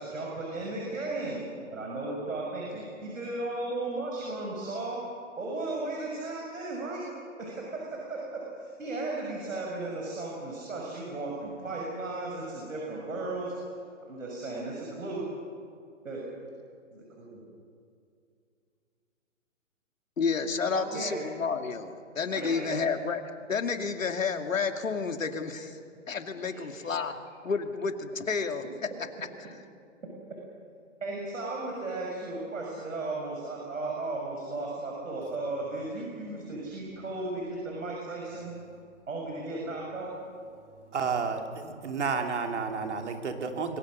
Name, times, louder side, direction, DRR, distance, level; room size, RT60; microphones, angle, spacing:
voice 1, 0.0-5.0 5.4-7.1 7.4-13.5 14.1-15.2 16.0-16.2 16.9-17.4 20.7-21.2 22.3-22.7 26.5-26.8 31.0-38.6 39.1-40.1, right 2 dB, 75° right, -2 dB, 6.5 m, -35 dB
voice 2, 20.2-23.2 23.5-25.8 26.1-27.1 27.4-28.6 29.4-29.5, left 5 dB, 80° left, 6 dB, 2.5 m, -30 dB
voice 3, 40.9-43.8, right 5 dB, 60° right, 4 dB, 3.2 m, -31 dB
28.0 x 22.5 x 6.5 m, 2.4 s
hypercardioid pair, 150°, 39 cm